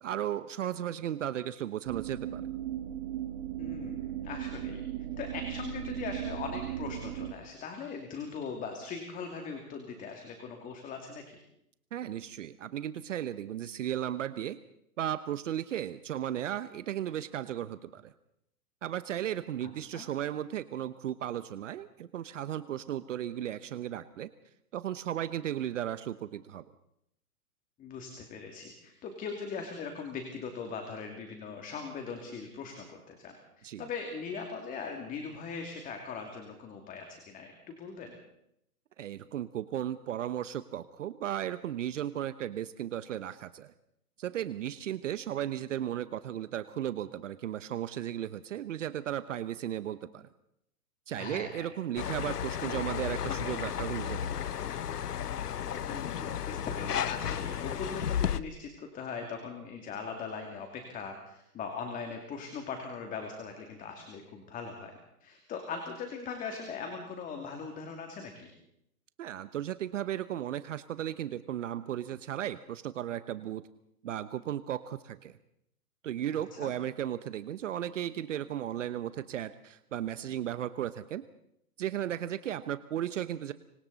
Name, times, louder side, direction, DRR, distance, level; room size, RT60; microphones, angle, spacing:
voice 1, 0.0-2.5 11.9-14.6 15.0-18.1 18.8-24.3 24.7-26.6 33.6-33.9 39.0-43.7 44.2-50.3 51.1-54.4 69.2-73.6 74.0-75.4 76.0-81.2 81.8-83.5, right 11 dB, 55° right, 13 dB, 1.0 m, -35 dB
sound 1, 1.9-7.3, right 12 dB, 30° right, 1.5 m, -37 dB
voice 2, 3.6-4.8 5.2-11.4 19.6-20.1 27.8-38.2 51.2-51.7 55.8-64.9 65.2-68.5 76.5-76.7, left 5 dB, 15° left, 3 dB, 2.6 m, -40 dB
sound 2, 52.0-58.4, left 9 dB, 85° left, 1.0 m, -33 dB
27.5 x 25.5 x 4.1 m, 0.78 s
hypercardioid pair, 140°, 46 cm